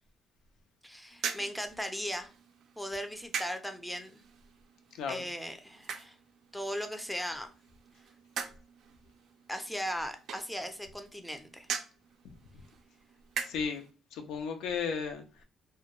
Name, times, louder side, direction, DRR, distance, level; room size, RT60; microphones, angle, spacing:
voice 1, 0.8-2.3 2.8-4.2 5.1-6.1 6.5-7.5 9.5-11.7, equal, ahead, 0.4 m, -37 dB
sound 1, 1.1-13.9, right 6 dB, 75° right, 0.3 m, -43 dB
voice 2, 13.4-13.8 14.1-15.4, left 6 dB, 90° left, 0.4 m, -34 dB
2.1 x 2.1 x 2.9 m
cardioid pair, 90°, 0 cm